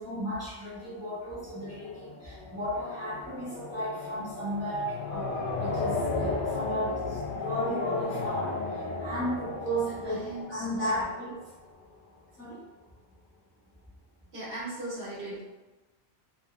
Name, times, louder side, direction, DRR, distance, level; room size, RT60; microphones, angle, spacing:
voice 1, 0.0-11.3 12.4-12.6, equal, 15° left, -10 dB, 0.8 m, -34 dB
sound 1, 0.8-11.7, left 3 dB, 65° left, 0.7 m, -35 dB
voice 2, 10.0-11.1 14.3-15.4, right 1 dB, 80° right, -8 dB, 1.4 m, -39 dB
3.3 x 2.1 x 2.3 m, 1.1 s
omnidirectional pair, 1.1 m